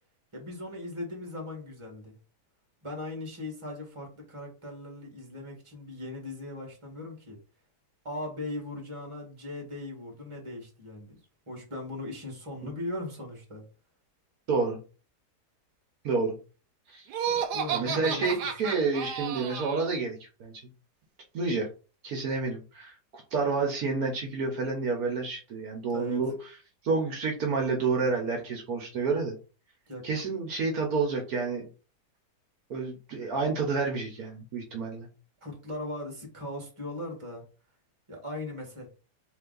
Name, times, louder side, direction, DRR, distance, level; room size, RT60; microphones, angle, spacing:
voice 1, 0.3-2.1 2.8-7.4 8.0-11.2 11.5-13.6 17.3-18.5 25.9-26.3 29.9-30.1 35.4-37.4 38.1-38.9, left 1 dB, 20° right, 1.5 m, -39 dB
voice 2, 14.5-14.8 16.0-16.4 16.9-17.1 17.7-20.6 21.3-21.7 22.0-26.3 26.8-29.4 30.0-31.6 32.7-35.1, right 4 dB, 65° right, 1.2 m, -29 dB
Laughter, 17.1-19.9, right 8 dB, 85° right, 1.2 m, -32 dB
3.3 x 3.2 x 3.8 m
omnidirectional pair, 1.8 m